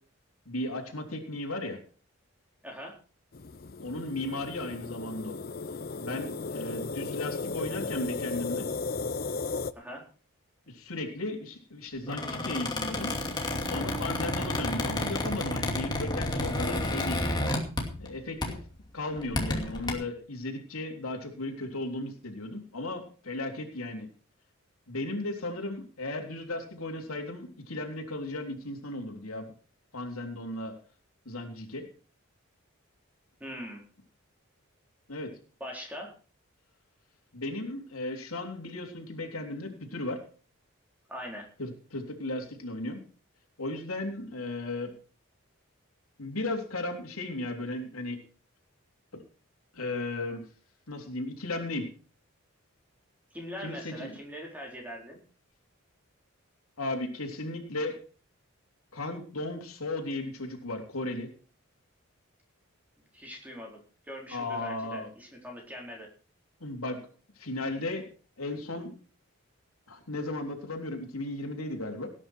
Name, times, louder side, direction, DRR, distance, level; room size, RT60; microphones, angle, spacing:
voice 1, 0.5-1.8 3.8-5.4 6.0-8.7 10.7-13.1 13.6-17.2 18.0-18.6 18.9-24.1 24.9-29.5 29.9-30.8 31.3-31.9 35.1-35.3 37.3-40.2 41.6-43.0 43.6-44.9 46.2-48.2 49.1-49.2 49.7-50.5 50.9-51.9 53.6-54.1 56.8-58.0 58.9-61.3 64.3-65.1 66.6-67.0 67.4-68.1 68.4-68.9 69.9-72.1, left 2 dB, 85° left, 2 dB, 3.6 m, -35 dB
voice 2, 2.6-3.0 9.7-10.1 33.4-33.8 35.6-36.1 41.1-41.5 53.3-55.2 63.1-66.1, equal, 5° right, 0 dB, 4.1 m, -42 dB
sound 1, 3.3-9.7, left 4 dB, 45° left, 0.6 m, -35 dB
Squeak, 12.0-18.1 18.4-18.7 19.2-19.9, left 1 dB, 20° left, 2.6 m, -31 dB
18.0 x 9.8 x 4.6 m, 0.39 s
head